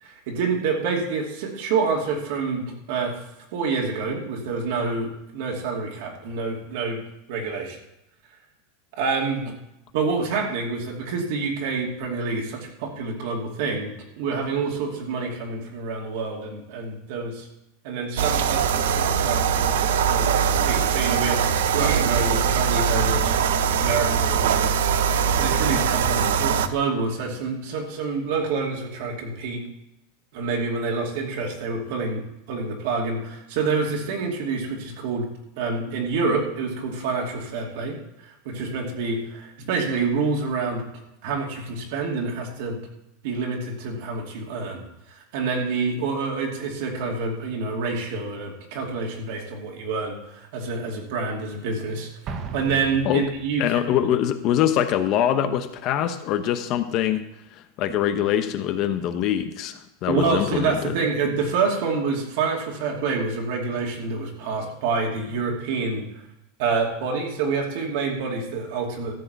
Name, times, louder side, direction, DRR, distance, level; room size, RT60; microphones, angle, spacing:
voice 1, 0.0-3.2 3.5-7.0 7.3-7.8 9.0-9.5 9.9-17.5 17.8-23.4 23.8-29.6 30.3-32.2 32.5-35.3 35.6-40.8 41.2-42.8 43.2-52.1 52.5-53.8 60.1-66.0 66.6-69.1, right 4 dB, 65° right, 0 dB, 2.6 m, -27 dB
sound 1, 18.2-26.7, right 7 dB, 90° right, 0.7 m, -22 dB
Explosion, 52.3-53.9, right 5 dB, 35° right, 1.2 m, -36 dB
voice 2, 53.6-57.2 57.6-60.9, left 10 dB, 40° left, 9 dB, 0.9 m, -23 dB
13.5 x 4.9 x 8.0 m, 0.87 s
supercardioid pair, 150°, 0 cm